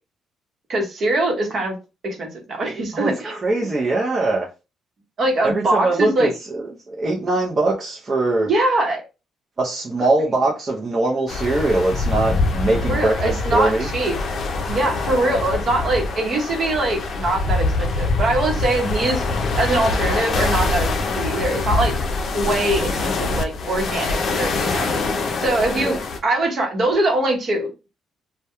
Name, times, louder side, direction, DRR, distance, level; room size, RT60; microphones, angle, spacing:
voice 1, 0.7-1.8 2.0-3.7 5.2-6.3 8.4-9.0 12.8-14.1 14.7-19.3 19.5-22.0 22.3-24.9 25.4-27.7, right 2 dB, 55° right, 0.9 m, -22 dB
voice 2, 2.9-4.5 5.4-8.5 9.6-13.1 13.5-13.9 25.8-26.0, right 2 dB, 35° right, 0.6 m, -22 dB
sound 1, 11.3-26.2, left 3 dB, 60° left, 0.4 m, -24 dB
2.2 x 2.1 x 2.9 m
cardioid pair, 90°, 0 cm